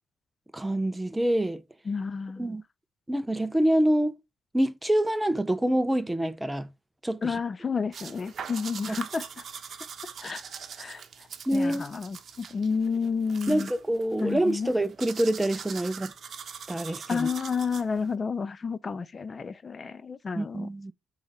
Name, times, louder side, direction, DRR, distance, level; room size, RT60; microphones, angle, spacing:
voice 1, 0.5-1.6 2.4-2.6 3.1-4.2 4.5-6.7 7.0-7.4 8.9-9.0 11.5-11.9 13.5-16.1 16.7-17.3 20.4-20.9, right 1 dB, 10° right, 0.6 m, -26 dB
voice 2, 1.9-2.4 7.2-9.3 10.2-10.4 10.8-11.0 11.5-13.7 14.2-14.7 17.1-20.7, left 5 dB, 35° left, 0.5 m, -30 dB
sound 1, 7.9-18.1, right 7 dB, 55° right, 1.0 m, -42 dB
8.0 x 3.4 x 4.8 m
cardioid pair, 90°, 0 cm